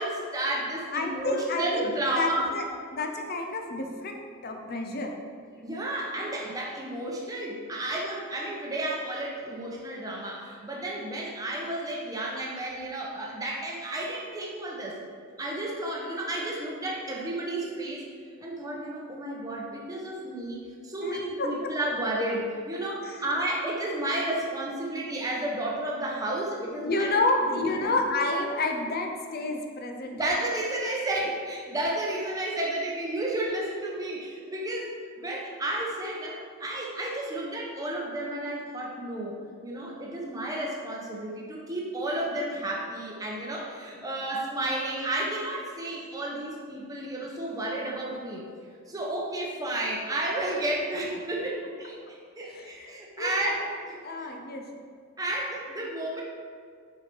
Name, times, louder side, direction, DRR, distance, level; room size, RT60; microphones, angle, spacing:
voice 1, 0.0-2.5 5.6-15.0 15.4-18.1 18.4-27.9 30.1-48.5 48.9-53.7 55.2-56.2, right 1 dB, 15° right, -3 dB, 0.8 m, -32 dB
voice 2, 0.9-2.6 2.9-5.1 21.0-21.7 23.0-23.2 26.8-30.2 52.5-53.6 54.0-54.6, left 2 dB, 45° left, 3 dB, 0.7 m, -30 dB
6.2 x 4.7 x 4.6 m, 2.1 s
head